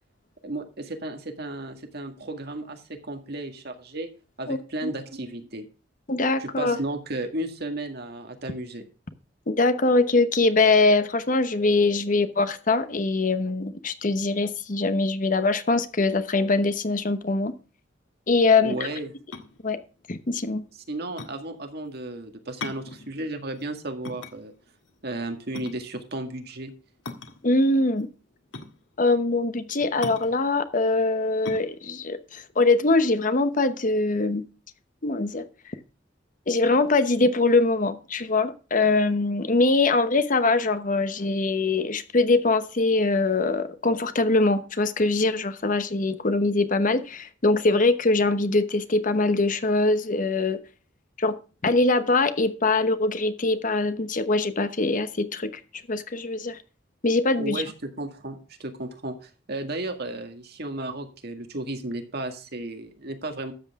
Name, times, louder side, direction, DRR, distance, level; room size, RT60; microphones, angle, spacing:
voice 1, 0.4-4.1 4.4-5.7 6.4-8.8 18.6-19.1 20.9-24.5 25.0-26.7 57.4-63.5, right 2 dB, 60° right, 2.0 m, -34 dB
voice 2, 4.5-4.9 6.1-6.8 9.5-17.5 18.3-18.8 19.6-19.8 20.1-20.6 27.4-28.1 29.0-34.5 35.0-35.5 36.5-50.6 51.2-51.4 51.6-55.5 55.9-56.6 57.0-57.6, left 3 dB, 45° left, 1.0 m, -23 dB
sound 1, 19.2-33.5, left 4 dB, 85° left, 1.7 m, -41 dB
12.5 x 8.0 x 3.6 m
head